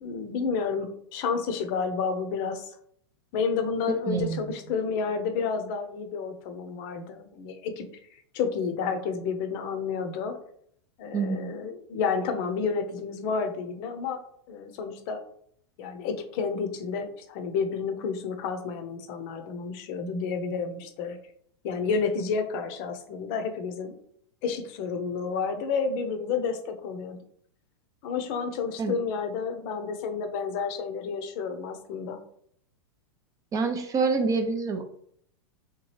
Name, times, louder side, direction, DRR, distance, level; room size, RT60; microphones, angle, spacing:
voice 1, 0.0-2.7 3.3-7.8 8.3-10.4 11.0-14.2 14.5-15.2 15.8-21.2 21.6-23.9 24.4-27.2 28.0-32.2, left 5 dB, 50° left, 7 dB, 0.6 m, -30 dB
voice 2, 4.1-4.4 11.1-11.5 28.8-29.0 33.5-34.8, right 4 dB, 25° right, 6 dB, 0.4 m, -26 dB
3.4 x 2.9 x 3.2 m, 0.66 s
hypercardioid pair, 115°, 15 cm